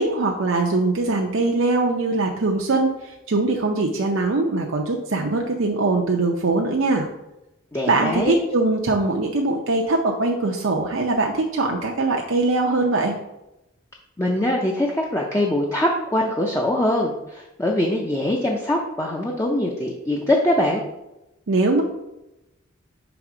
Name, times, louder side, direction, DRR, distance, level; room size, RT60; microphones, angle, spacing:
voice 1, 0.0-7.1 7.9-13.2 21.5-21.8, right 2 dB, 70° right, 1 dB, 0.6 m, -22 dB
voice 2, 7.7-8.4 14.2-20.8, left 1 dB, 15° left, -1 dB, 0.5 m, -22 dB
6.0 x 3.5 x 4.9 m, 0.93 s
head